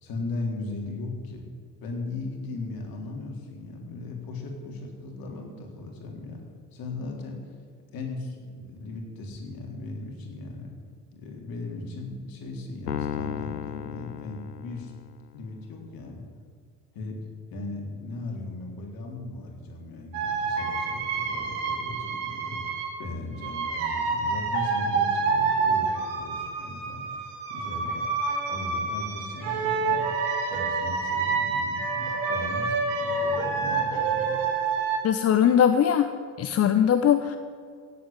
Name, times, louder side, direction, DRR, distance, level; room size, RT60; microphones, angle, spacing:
voice 1, 0.0-1.4 1.8-6.4 6.7-7.5 7.9-10.7 11.1-14.9 15.3-16.3 16.9-17.2 17.5-28.1 28.4-30.1 30.5-34.4, left 2 dB, 45° left, 1 dB, 3.9 m, -37 dB
Piano, 12.9-15.3, left 10 dB, 80° left, 0.7 m, -34 dB
sound 1, 20.1-22.9 23.4-35.0, right 4 dB, 60° right, 3.7 m, -28 dB
voice 2, 35.0-36.1 36.4-37.4, left 9 dB, 30° left, 10 dB, 0.8 m, -20 dB
16.0 x 8.3 x 9.7 m, 2.1 s
figure-of-eight pair, 60°, 47 cm